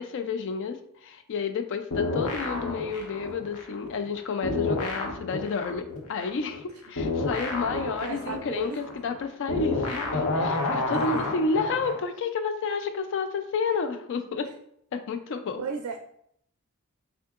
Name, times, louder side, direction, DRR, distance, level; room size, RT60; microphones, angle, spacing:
voice 1, 0.0-14.5 14.9-15.6, left 4 dB, 60° left, 8 dB, 0.4 m, -30 dB
sound 1, 1.9-4.2 4.4-12.0, left 3 dB, 90° left, 0.7 m, -30 dB
voice 2, 7.7-8.8 11.1-11.3 15.6-16.0, right 5 dB, 80° right, 5 dB, 0.4 m, -34 dB
3.6 x 3.5 x 2.3 m, 0.70 s
head